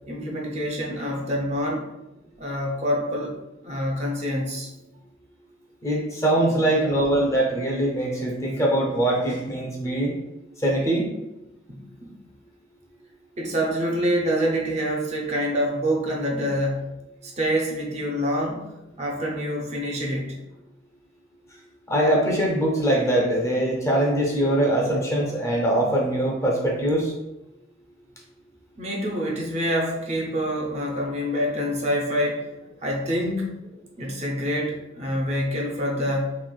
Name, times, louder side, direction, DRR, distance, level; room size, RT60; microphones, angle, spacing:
voice 1, 0.1-1.8 2.4-3.3 3.6-4.7 11.7-12.1 13.4-16.8 17.2-18.6 19.0-20.4 28.8-32.4 32.8-33.6 34.0-36.3, equal, 35° right, -2 dB, 0.5 m, -26 dB
voice 2, 5.8-10.2 10.6-11.1 21.9-27.1, right 1 dB, 15° left, -2 dB, 0.5 m, -22 dB
3.0 x 2.9 x 2.3 m, 0.95 s
head